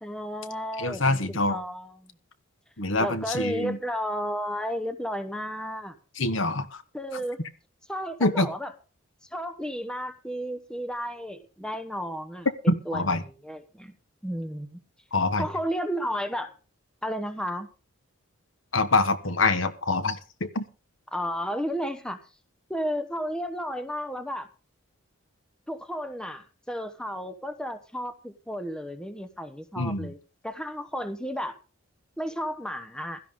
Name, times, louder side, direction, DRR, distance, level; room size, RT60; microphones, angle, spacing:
voice 1, 0.0-2.1 3.0-5.9 6.9-7.4 7.9-8.7 9.2-13.9 14.2-14.8 15.4-16.5 17.0-17.7 21.1-22.2 22.7-24.5 25.7-30.2 30.4-31.6 32.2-33.2, equal, 5° left, 9 dB, 1.0 m, -33 dB
voice 2, 0.8-1.6 2.8-3.8 6.2-6.7 8.2-8.5 12.7-13.2 15.1-15.5 18.7-20.6 29.8-30.1, left 2 dB, 65° left, 11 dB, 1.4 m, -25 dB
16.5 x 13.0 x 3.7 m, 0.35 s
head